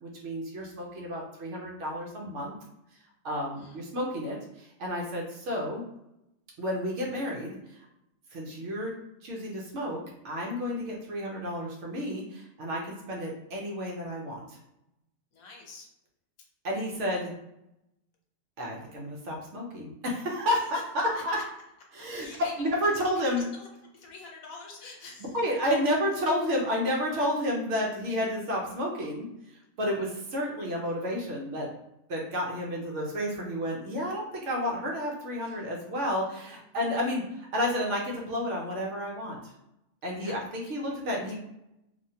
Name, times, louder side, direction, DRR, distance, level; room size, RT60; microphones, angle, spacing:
voice 1, 0.0-2.5 3.2-5.8 6.6-7.8 8.3-8.9 9.2-10.0 10.2-14.6 16.6-17.3 18.6-20.6 21.2-21.4 21.9-22.3 22.6-23.4 25.3-29.3 29.8-31.7 32.1-39.4 40.0-41.4, equal, 65° right, -2 dB, 1.0 m, -31 dB
voice 2, 3.6-3.9 15.3-15.9 20.5-20.8 21.1-21.5 22.1-22.6 23.5-25.4 35.4-35.7 36.2-36.6 40.2-40.4, left 3 dB, 80° left, 0 dB, 1.2 m, -46 dB
3.1 x 2.2 x 2.7 m, 0.85 s
omnidirectional pair, 1.4 m